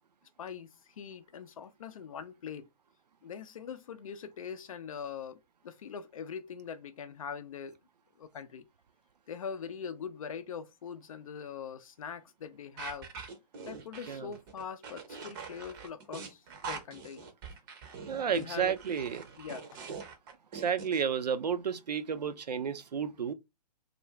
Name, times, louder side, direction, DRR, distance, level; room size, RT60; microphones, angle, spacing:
voice 1, 0.4-2.7 3.2-7.8 8.2-8.6 9.3-13.1 13.7-17.2 18.3-18.7 19.4-19.8, left 7 dB, 55° left, 0.4 m, -42 dB
sound 1, 12.8-21.0, right 5 dB, 30° right, 0.6 m, -44 dB
voice 2, 18.1-19.2 20.5-23.3, right 7 dB, 75° right, 0.5 m, -32 dB
2.4 x 2.3 x 2.8 m
figure-of-eight pair, 125°, 21 cm